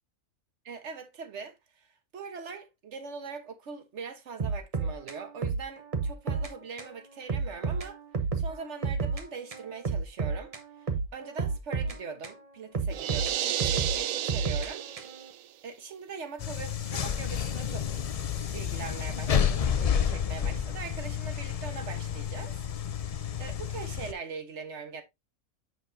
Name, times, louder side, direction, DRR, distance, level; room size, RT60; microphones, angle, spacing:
voice 1, 0.6-8.0 8.3-10.5 10.8-14.9 15.6-18.0 18.5-23.0 23.4-25.0, right 5 dB, 60° right, 1.5 m, -42 dB
sound 1, 4.4-6.5 6.8-6.9 7.3-9.2 9.5-12.4 12.7-15.3, right 5 dB, 30° right, 0.9 m, -31 dB
sound 2, 12.9-15.4, right 11 dB, 80° right, 1.0 m, -32 dB
sound 3, 16.4-24.1, left 8 dB, 70° left, 0.3 m, -30 dB
7.7 x 6.2 x 2.7 m
omnidirectional pair, 1.4 m